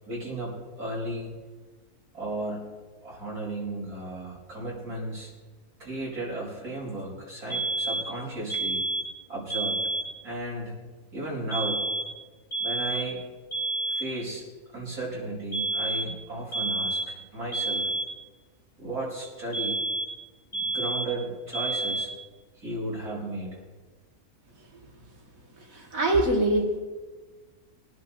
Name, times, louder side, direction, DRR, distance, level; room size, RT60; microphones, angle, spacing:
voice 1, 0.1-1.3 2.1-2.7 3.0-5.3 5.8-8.8 9.3-9.8 10.2-10.7 11.1-11.9 12.6-13.2 13.9-14.5 14.7-17.9 18.8-19.8 20.6-22.1 22.6-23.6, right 2 dB, 90° right, -4 dB, 5.2 m, -34 dB
sound 1, 7.5-8.2 8.5-9.2 9.5-10.2 11.5-12.2 12.5-13.2 13.5-14.2 15.5-16.2 16.5-17.2 17.5-18.2 19.5-20.2 20.5-21.2 21.5-22.2, right 2 dB, 35° left, 2.7 m, -29 dB
voice 2, 25.6-26.8, right 1 dB, 65° right, -1 dB, 2.8 m, -24 dB
23.0 x 10.5 x 3.0 m, 1.3 s
omnidirectional pair, 1.5 m